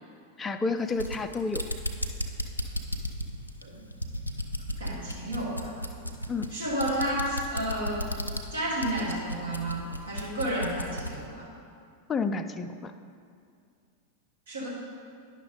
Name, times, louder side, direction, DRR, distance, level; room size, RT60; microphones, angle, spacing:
voice 1, 0.4-1.6 6.3-6.5 12.1-12.9, left 4 dB, 20° left, 9 dB, 0.4 m, -30 dB
sound 1, 0.8-11.2, equal, 85° left, 0.5 m, -35 dB
voice 2, 4.8-5.7 6.5-8.1 8.5-11.5 14.5-14.7, right 1 dB, 70° right, -5 dB, 1.4 m, -31 dB
9.7 x 5.9 x 3.8 m, 2.3 s
figure-of-eight pair, 90°, 0 cm